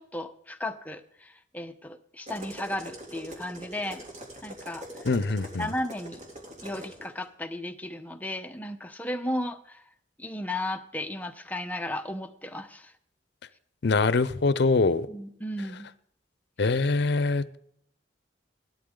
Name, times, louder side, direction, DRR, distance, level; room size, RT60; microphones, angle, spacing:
voice 1, 0.0-4.0 4.4-4.9 5.6-6.2 6.6-9.8 10.2-12.9 15.1-15.9, left 1 dB, 10° left, 6 dB, 0.9 m, -35 dB
sound 1, 2.3-7.1, equal, 40° right, 3.0 m, -43 dB
voice 2, 5.0-5.7 13.8-15.1 16.6-17.6, left 3 dB, 65° left, 16 dB, 0.6 m, -24 dB
17.0 x 12.0 x 3.9 m, 0.69 s
head